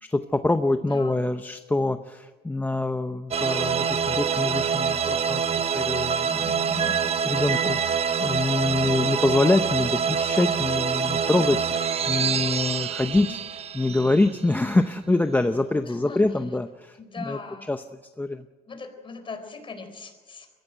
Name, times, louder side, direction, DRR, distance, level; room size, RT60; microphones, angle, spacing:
voice 1, 0.1-13.4 13.7-17.0 17.3-17.4 17.7-17.8 18.2-18.4, left 2 dB, 10° left, 8 dB, 0.7 m, -25 dB
voice 2, 0.8-1.3 11.2-11.5 13.0-13.4 15.8-16.4 17.0-17.7 18.7-20.5, left 4 dB, 30° left, 7 dB, 4.2 m, -40 dB
sound 1, 3.3-14.7, right 6 dB, 35° right, 1.0 m, -25 dB
22.0 x 15.5 x 9.0 m, 1.4 s
cardioid pair, 110°, 17 cm